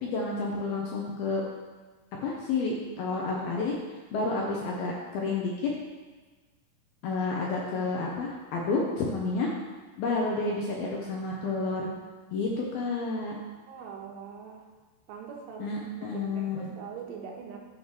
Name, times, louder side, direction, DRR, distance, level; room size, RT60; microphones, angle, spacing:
voice 1, 0.0-1.4 2.2-3.7 4.1-5.7 7.0-9.5 10.0-11.9 12.3-13.4 15.6-16.7, left 3 dB, 70° left, -2 dB, 2.4 m, -30 dB
voice 2, 13.7-14.6 15.1-17.7, right 6 dB, 85° right, 0 dB, 3.8 m, -43 dB
11.0 x 5.3 x 6.0 m, 1.3 s
omnidirectional pair, 5.5 m